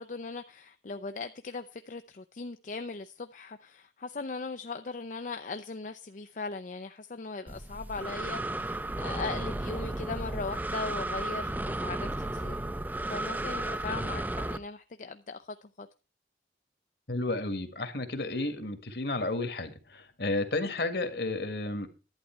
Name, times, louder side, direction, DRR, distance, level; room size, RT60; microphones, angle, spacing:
voice 1, 0.0-12.6 13.1-15.9, left 3 dB, 45° left, 0.5 m, -39 dB
Breathing, 7.5-14.6, right 1 dB, 10° right, 0.5 m, -34 dB
voice 2, 17.1-21.9, left 2 dB, 60° left, 1.7 m, -32 dB
11.5 x 9.2 x 4.5 m
head